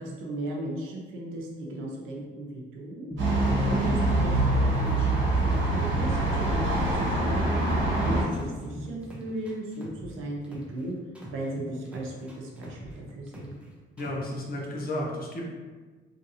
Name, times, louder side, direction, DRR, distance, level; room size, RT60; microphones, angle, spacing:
voice 1, 0.0-3.1 3.7-6.2 6.5-7.6 8.0-11.0 11.3-13.6, right 1 dB, 85° right, -2 dB, 0.7 m, -36 dB
sound 1, 3.1-5.2 5.5-8.0 8.3-10.8 11.1-13.7 14.0-14.3, equal, 5° right, 0.7 m, -43 dB
sound 2, 3.2-8.2, right 2 dB, 70° right, 1.3 m, -24 dB
voice 2, 14.0-15.4, left 1 dB, 50° left, -2 dB, 0.8 m, -33 dB
3.1 x 2.6 x 2.7 m, 1.4 s
cardioid pair, 90°, 20 cm